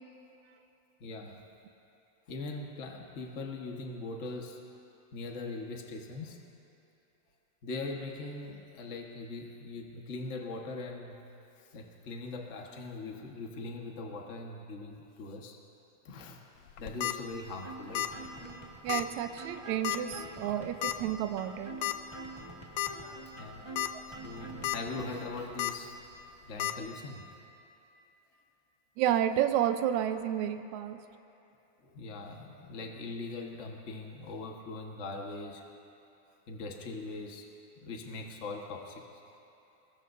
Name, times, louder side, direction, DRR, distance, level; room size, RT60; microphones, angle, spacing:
voice 1, 1.0-1.4 2.3-4.6 5.1-6.4 7.6-11.2 11.7-15.6 16.0-16.4 16.8-18.1 23.2-23.7 24.2-26.0 26.5-27.3 31.8-35.6 36.5-37.5 37.8-39.0, left 3 dB, 50° left, 1 dB, 0.8 m, -41 dB
sound 1, 16.7-17.1 17.9-18.2 18.5-18.6 18.9-19.0 19.8-20.1 20.8-20.9 21.8-22.0 22.4-22.5 22.8-22.9 23.6-23.9 24.3-24.8 25.6-25.7 26.6-26.7, left 15 dB, 75° left, 1.7 m, -31 dB
sound 2, 17.6-25.6, right 2 dB, 20° right, 0.7 m, -47 dB
voice 2, 18.8-21.7 29.0-31.0, right 11 dB, 75° right, 8 dB, 2.0 m, -30 dB
24.5 x 21.5 x 2.7 m, 2.9 s
omnidirectional pair, 3.5 m